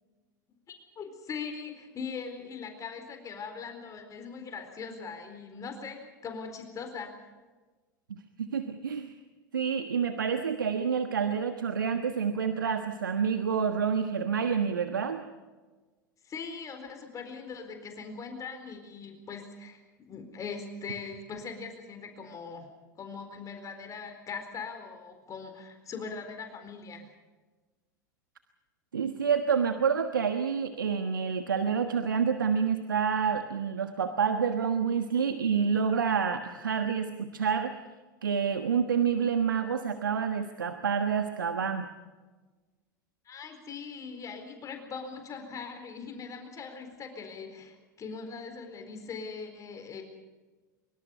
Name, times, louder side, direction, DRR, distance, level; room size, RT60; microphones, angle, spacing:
voice 1, 0.7-7.3 16.2-19.8 20.1-22.7 23.0-27.1 43.3-50.0, left 5 dB, 30° left, 6 dB, 4.3 m, -41 dB
voice 2, 8.1-9.1 9.5-15.2 28.9-37.7 38.2-41.9, right 6 dB, 80° right, 8 dB, 1.4 m, -28 dB
24.5 x 23.5 x 5.5 m, 1.3 s
figure-of-eight pair, 80°, 11 cm